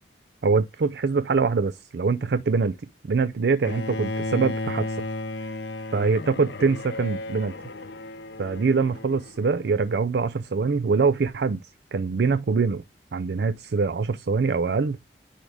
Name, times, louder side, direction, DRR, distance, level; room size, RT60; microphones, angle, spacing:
voice 1, 0.4-2.8 3.0-5.0 5.9-7.5 8.4-12.8 13.1-15.0, right 4 dB, 65° right, 0.4 m, -24 dB
Bowed string instrument, 3.6-9.7, left 2 dB, 80° left, 0.8 m, -34 dB
10.0 x 3.6 x 3.4 m
head